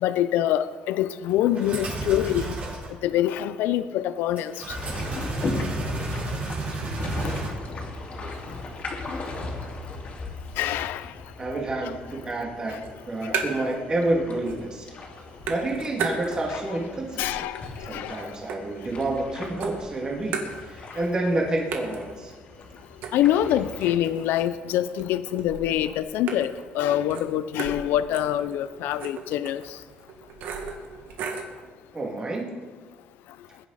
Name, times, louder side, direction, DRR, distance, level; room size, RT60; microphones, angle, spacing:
voice 1, 0.0-2.5 3.0-4.6 10.6-11.1 13.2-13.4 17.2-18.3 23.1-29.6, left 12 dB, 90° left, 13 dB, 0.5 m, -25 dB
sound 1, 1.5-2.9 4.4-7.5, right 3 dB, 40° right, 4.0 m, -32 dB
sound 2, 4.7-24.0, left 3 dB, 40° left, 2.7 m, -38 dB
voice 2, 11.4-14.9 15.5-17.5 17.9-20.4 20.7-22.3 31.9-32.5, right 2 dB, 25° right, -1 dB, 2.5 m, -29 dB
sound 3, 12.8-13.8 14.1-14.8 15.1-16.7 17.1-19.3 19.6-21.0 21.3-21.4 21.7-31.6, right 5 dB, 80° right, 2.0 m, -36 dB
21.5 x 10.5 x 4.1 m, 1.4 s
cardioid pair, 145°, 3 cm